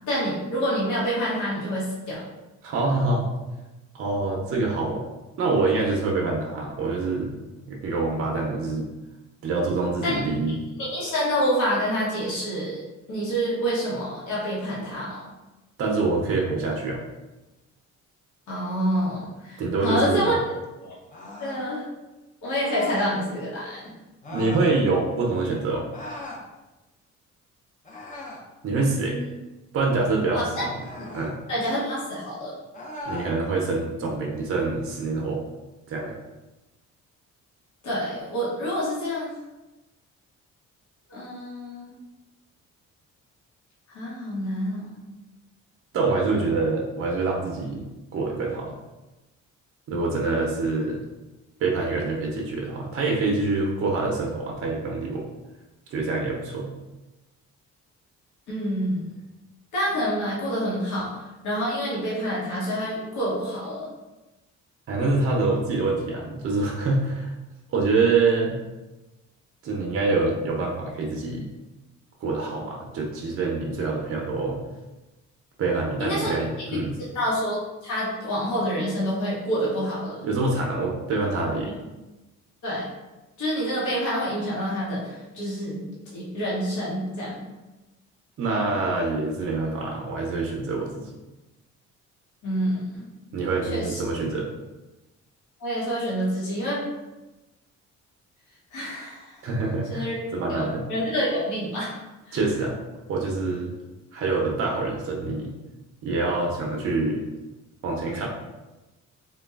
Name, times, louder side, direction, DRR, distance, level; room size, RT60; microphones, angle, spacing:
voice 1, 0.1-2.2 10.0-10.2 10.8-12.8 13.1-15.2 18.5-20.4 20.8-21.0 21.4-21.8 22.4-23.8 28.9-29.3 30.3-30.6 31.0-31.1 31.5-32.5 37.8-39.3 41.1-42.0 43.9-45.0 58.5-59.0 59.7-63.9 76.0-76.3 77.1-80.3 81.7-81.8 82.6-82.9 83.4-85.8 86.1-87.4 92.4-93.0 93.6-94.0 95.6-96.8 98.7-99.4 99.9-100.2 100.5-102.0 102.3-102.4, equal, 75° left, -6 dB, 1.0 m, -27 dB
voice 2, 2.6-3.3 3.9-5.1 5.4-7.3 7.7-8.9 9.4-10.6 15.8-17.0 19.6-20.3 24.3-25.8 28.6-29.2 29.7-30.7 31.1-31.3 33.1-35.4 35.9-36.1 45.9-47.8 48.1-48.7 49.9-51.0 51.6-55.3 55.9-56.7 64.9-67.3 67.7-68.6 69.6-71.5 72.2-74.6 75.6-76.9 80.2-81.7 88.4-91.1 93.3-94.5 99.4-100.1 100.3-100.8 102.3-102.8 103.1-103.7 104.1-105.6 106.0-107.2 107.8-108.3, right 3 dB, 50° right, -1 dB, 0.5 m, -25 dB
sound 1, 21.1-21.7 22.6-23.2 24.2-24.7 25.9-26.4 27.8-28.5 30.8-31.4 32.7-33.3, left 2 dB, 25° left, 0.6 m, -38 dB
3.0 x 2.2 x 2.3 m, 1.1 s
cardioid pair, 90°, 30 cm